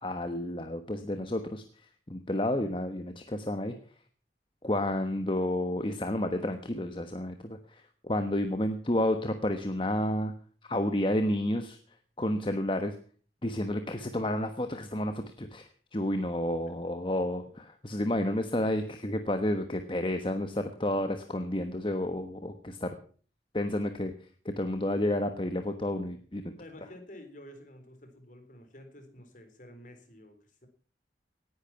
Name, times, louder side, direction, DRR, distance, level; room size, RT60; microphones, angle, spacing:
voice 1, 0.0-1.6 2.1-3.7 4.6-10.3 10.6-11.8 12.2-12.9 13.4-15.6 15.9-22.9 23.5-24.1 24.6-26.5, left 1 dB, 30° left, 7 dB, 1.2 m, -30 dB
voice 2, 26.6-30.7, left 1 dB, 45° left, 7 dB, 3.8 m, -50 dB
18.0 x 10.5 x 5.9 m, 0.44 s
head